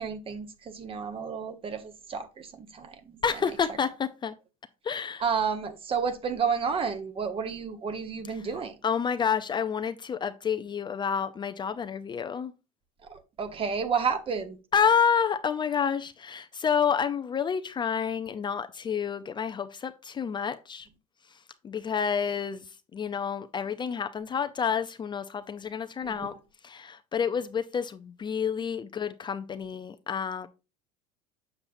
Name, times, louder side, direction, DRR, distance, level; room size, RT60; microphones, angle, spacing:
voice 1, 0.0-3.2 5.2-8.7 13.1-14.6 26.0-26.3, right 6 dB, 30° right, 1.2 m, -31 dB
voice 2, 3.2-4.3 4.8-5.2 8.8-12.5 14.7-20.9 21.6-22.6 22.9-26.3 26.6-30.5, left 7 dB, 25° left, 0.5 m, -29 dB
7.2 x 6.7 x 2.6 m
hypercardioid pair, 85°, 18 cm